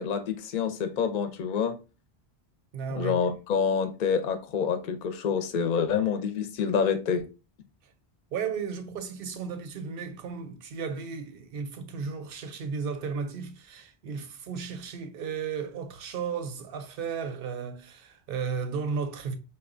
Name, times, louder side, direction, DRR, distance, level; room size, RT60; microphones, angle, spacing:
voice 1, 0.0-1.8 2.9-7.3, left 6 dB, 55° left, 0.6 m, -27 dB
voice 2, 2.7-3.2 7.8-7.9 8.3-19.4, right 5 dB, 65° right, 0.7 m, -34 dB
4.2 x 2.2 x 2.4 m
omnidirectional pair, 1.1 m